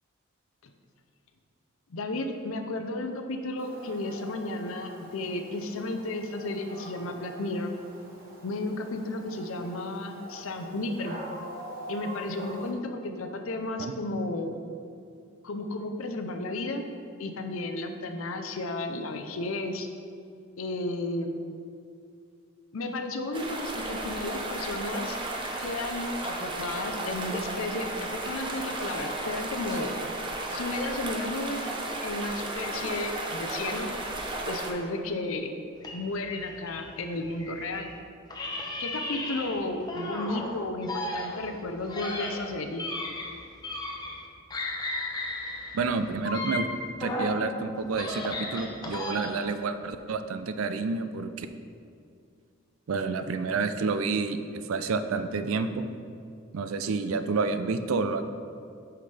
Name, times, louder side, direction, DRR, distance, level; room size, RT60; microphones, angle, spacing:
voice 1, 1.9-7.7 8.4-11.2 11.9-14.7 15.4-16.8 17.2-19.9 20.6-21.4 22.7-25.2 25.6-30.0 30.5-31.6 32.0-33.9 34.4-35.6 35.9-37.9 38.8-42.9, left 2 dB, 75° left, 6 dB, 0.6 m, -33 dB
Dog, 3.6-12.7, right 1 dB, 45° right, 1.3 m, -44 dB
sound 1, 23.3-34.7, right 2 dB, 25° right, 0.6 m, -34 dB
sound 2, 35.8-37.9 38.3-40.5 40.8-44.2 44.5-47.4 47.8-49.5, left 2 dB, 20° left, 0.7 m, -35 dB
voice 2, 45.7-46.7 47.0-51.5 52.9-55.8 56.5-58.3, right 4 dB, 75° right, 10 dB, 0.4 m, -29 dB
8.5 x 5.8 x 3.3 m, 2.3 s
head